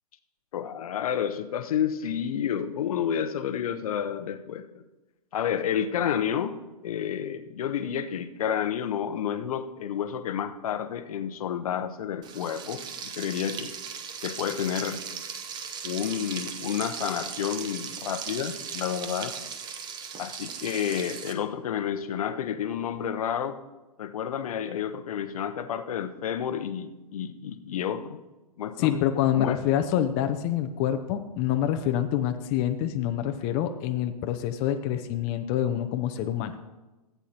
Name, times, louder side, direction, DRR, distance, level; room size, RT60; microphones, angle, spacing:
voice 1, 0.5-4.7 5.3-6.6 6.8-13.7 14.2-15.0 15.8-19.3 20.2-23.6 24.0-28.2 28.6-29.0 29.3-29.6, left 9 dB, 65° left, 10 dB, 0.8 m, -30 dB
Frying (food), 12.2-21.3, right 7 dB, 20° right, 0.7 m, -38 dB
voice 2, 28.8-36.5, left 11 dB, 30° left, 7 dB, 0.6 m, -26 dB
15.0 x 8.3 x 2.9 m, 1.1 s
hypercardioid pair, 125°, 20 cm